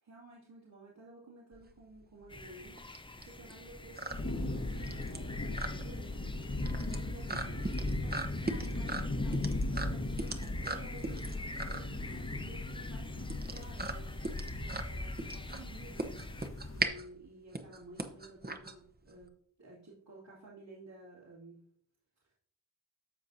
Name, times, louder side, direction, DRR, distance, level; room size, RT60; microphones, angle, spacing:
voice 1, 0.0-6.0 6.7-19.3 19.6-21.6, right 2 dB, 65° right, -9 dB, 2.5 m, -54 dB
sound 1, 1.5-19.3, right 2 dB, 20° right, 0.9 m, -40 dB
sound 2, 2.3-16.5, left 2 dB, 10° left, 0.5 m, -49 dB
sound 3, 4.1-16.9, left 2 dB, 30° left, 1.2 m, -37 dB
13.5 x 4.5 x 2.7 m, 0.65 s
cardioid pair, 45°, 46 cm